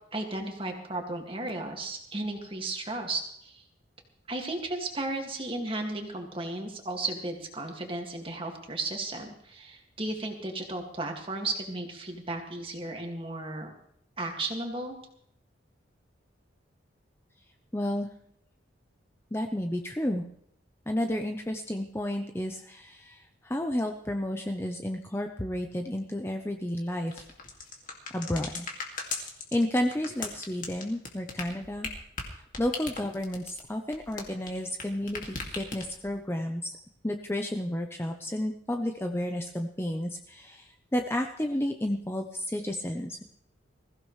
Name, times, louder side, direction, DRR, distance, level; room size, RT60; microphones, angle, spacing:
voice 1, 0.1-3.6 4.3-13.7 14.2-15.0, right 2 dB, 30° right, 2 dB, 2.2 m, -34 dB
voice 2, 17.7-18.1 19.3-20.2 20.9-27.2 28.1-28.7 29.5-31.9 32.6-36.7 37.0-43.2, left 1 dB, 15° left, 4 dB, 0.7 m, -31 dB
sound 1, 27.1-34.8 35.1-36.1, left 4 dB, 45° left, 2.4 m, -37 dB
21.5 x 15.5 x 3.3 m, 0.69 s
head